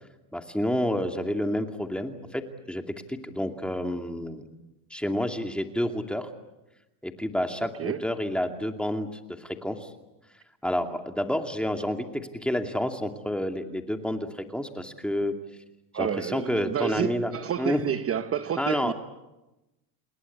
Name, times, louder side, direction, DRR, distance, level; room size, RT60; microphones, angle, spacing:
voice 1, 0.3-2.8 3.1-4.5 4.9-6.3 7.0-9.1 9.4-9.9 10.6-15.3 15.9-17.3 17.6-17.8 18.6-18.9, left 1 dB, ahead, 5 dB, 2.5 m, -29 dB
voice 2, 7.6-8.0 15.9-18.9, right 9 dB, 30° right, 11 dB, 0.9 m, -30 dB
29.0 x 21.0 x 8.6 m, 1.0 s
supercardioid pair, 120°, 46 cm